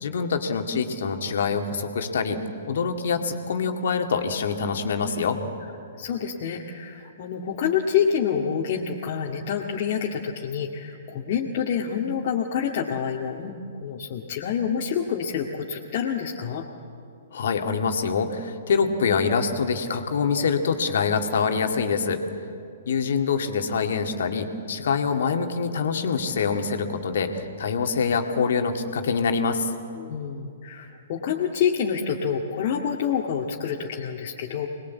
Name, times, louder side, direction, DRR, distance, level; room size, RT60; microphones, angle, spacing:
voice 1, 0.0-5.4 17.3-22.2 22.9-29.7, left 5 dB, 60° left, 5 dB, 2.2 m, -25 dB
voice 2, 6.0-13.5 13.8-16.7 30.0-34.7, left 7 dB, 45° left, -2 dB, 2.0 m, -27 dB
26.0 x 20.5 x 8.4 m, 2.5 s
figure-of-eight pair, 115°, 0 cm